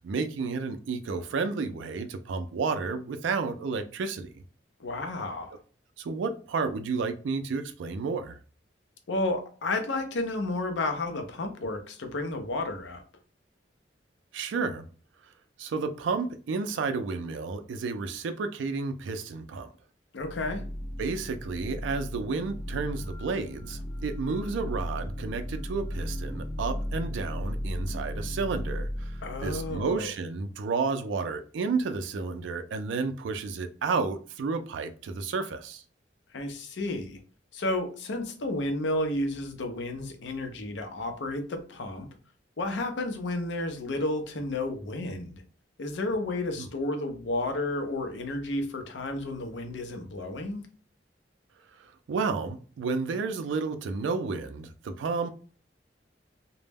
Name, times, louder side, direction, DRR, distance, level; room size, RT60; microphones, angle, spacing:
voice 1, 0.0-4.3 6.0-8.4 14.3-14.8 15.6-19.7 21.0-29.1 29.4-35.8 46.6-46.7 52.1-55.3, right 4 dB, 90° right, 0.4 m, -31 dB
voice 2, 4.8-5.5 9.1-13.0 20.1-20.6 29.2-30.1 36.3-37.2 37.5-42.1 42.6-45.4 45.8-50.6, left 2 dB, 75° left, 0.5 m, -31 dB
sound 1, 20.2-30.0, equal, 25° left, 0.4 m, -35 dB
2.1 x 2.0 x 3.3 m
head